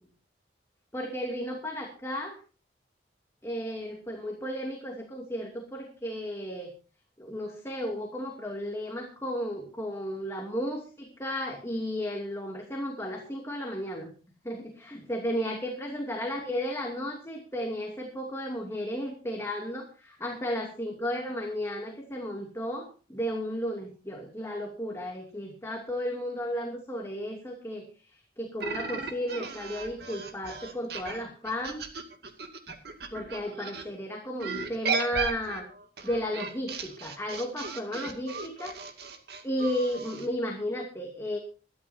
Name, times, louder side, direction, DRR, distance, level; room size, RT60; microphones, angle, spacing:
voice 1, 0.9-2.4 3.4-6.7 7.2-14.1 14.4-31.8 33.1-35.7 36.0-38.8 39.4-41.4, equal, 15° left, 1 dB, 2.6 m, -34 dB
sound 1, 28.6-33.8 34.4-40.3, right 5 dB, 65° right, 2.4 m, -36 dB
23.0 x 13.5 x 2.8 m, 0.35 s
head